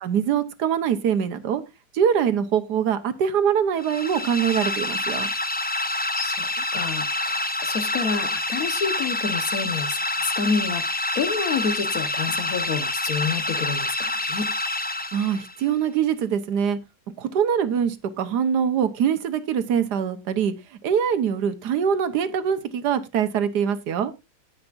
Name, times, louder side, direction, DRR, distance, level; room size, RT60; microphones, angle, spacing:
voice 1, 0.0-1.6 1.9-5.3 15.1-16.8 17.2-20.5 20.8-24.1, right 8 dB, 85° right, 1.5 m, -23 dB
sound 1, 3.8-15.6, left 2 dB, 10° left, 0.4 m, -27 dB
voice 2, 6.1-14.5, left 5 dB, 65° left, 1.6 m, -29 dB
17.5 x 5.9 x 2.5 m
omnidirectional pair, 1.7 m